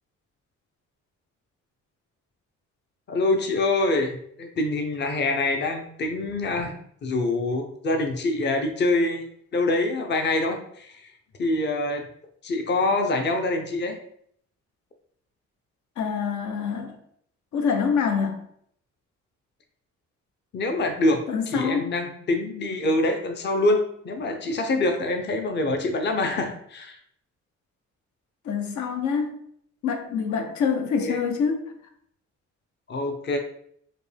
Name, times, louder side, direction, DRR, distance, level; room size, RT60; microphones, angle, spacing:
voice 1, 3.1-6.7 7.0-9.2 9.5-11.1 11.4-12.1 12.4-14.0 20.5-21.2 21.5-27.0 30.3-30.5 31.0-31.2 32.9-33.4, left 2 dB, 35° left, 4 dB, 0.7 m, -25 dB
voice 2, 16.0-17.0 17.5-18.4 21.3-21.9 28.4-29.4 29.8-31.6, left 6 dB, 70° left, 5 dB, 0.8 m, -26 dB
5.0 x 2.2 x 3.3 m, 0.66 s
cardioid pair, 90°, 30 cm